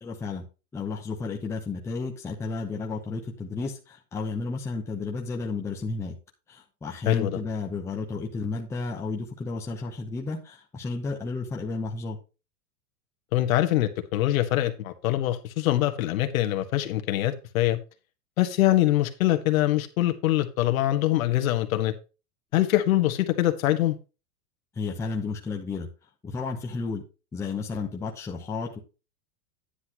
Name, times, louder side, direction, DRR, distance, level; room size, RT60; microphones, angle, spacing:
voice 1, 0.0-0.4 0.7-6.2 6.5-12.2 24.7-25.9 26.2-27.0 27.3-28.8, left 4 dB, 5° left, 0.8 m, -32 dB
voice 2, 7.1-7.4 13.3-17.8 18.4-21.9 22.5-24.0, left 14 dB, 60° left, 1.5 m, -24 dB
10.0 x 8.0 x 2.9 m
supercardioid pair, 160°, 47 cm